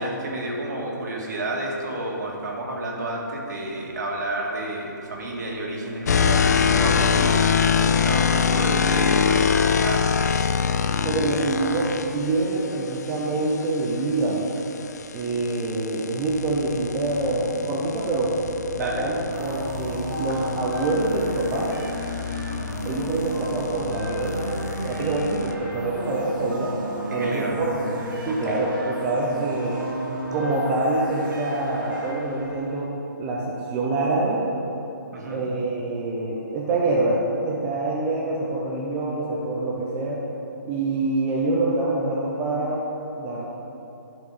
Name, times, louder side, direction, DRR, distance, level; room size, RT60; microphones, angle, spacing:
voice 1, 0.0-10.4 18.8-19.1 20.3-20.5 27.1-27.6 28.3-28.6 35.1-35.4, right 1 dB, 55° right, -1 dB, 1.7 m, -31 dB
sound 1, 6.1-12.1 14.5-25.5, left 6 dB, 55° left, 0.4 m, -24 dB
voice 2, 11.0-14.5 15.1-18.3 18.8-21.7 22.8-24.5 24.8-26.7 27.1-28.0 28.3-29.8 30.3-32.9 33.2-34.4 35.3-40.2 40.6-42.8 43.2-43.4, right 2 dB, 10° right, -4 dB, 0.5 m, -25 dB
sound 2, 19.3-32.8, right 1 dB, 80° right, 2.0 m, -33 dB
11.0 x 4.5 x 4.8 m, 2.9 s
hypercardioid pair, 165°, 11 cm